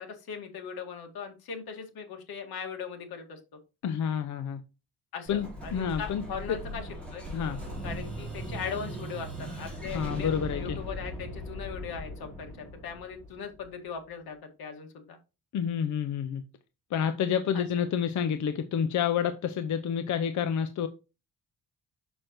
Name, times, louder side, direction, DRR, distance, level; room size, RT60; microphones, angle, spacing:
voice 1, 0.0-3.4 5.1-7.2 7.8-15.2 17.5-17.7, left 6 dB, 75° left, 1.9 m, -39 dB
voice 2, 3.8-4.6 5.3-6.2 6.5-6.6 7.3-7.6 9.9-10.8 15.5-16.4 16.9-20.9, left 8 dB, 50° left, 0.6 m, -29 dB
Explosion, 5.3-13.9, equal, 5° left, 3.7 m, -39 dB
6.4 x 6.2 x 3.0 m
cardioid pair, 130°, 37 cm